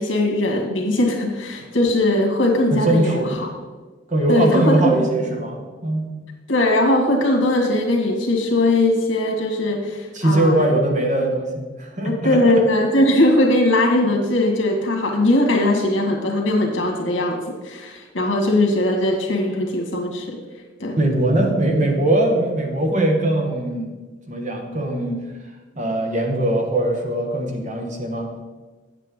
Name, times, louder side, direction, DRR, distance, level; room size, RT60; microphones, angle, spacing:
voice 1, 0.0-3.5 4.3-5.1 6.5-10.7 12.0-20.4 20.8-21.0, left 1 dB, 80° left, 0 dB, 1.9 m, -20 dB
voice 2, 2.7-3.4 4.1-6.1 10.1-12.6 20.9-23.9 24.3-25.2 25.8-28.3, right 1 dB, 40° right, 2 dB, 1.2 m, -21 dB
8.4 x 8.3 x 3.8 m, 1.3 s
head